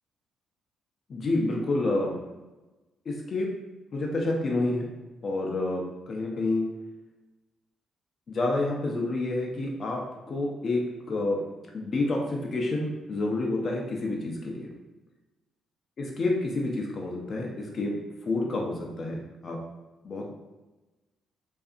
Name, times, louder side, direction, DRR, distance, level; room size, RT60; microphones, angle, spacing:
voice 1, 1.1-2.2 3.1-3.5 3.9-4.9 5.2-6.6 8.3-11.4 11.7-14.7 16.0-18.0 18.3-19.6 20.0-20.3, left 2 dB, 45° left, -1 dB, 0.5 m, -29 dB
2.6 x 2.4 x 2.4 m, 1.1 s
cardioid pair, 90°, 0 cm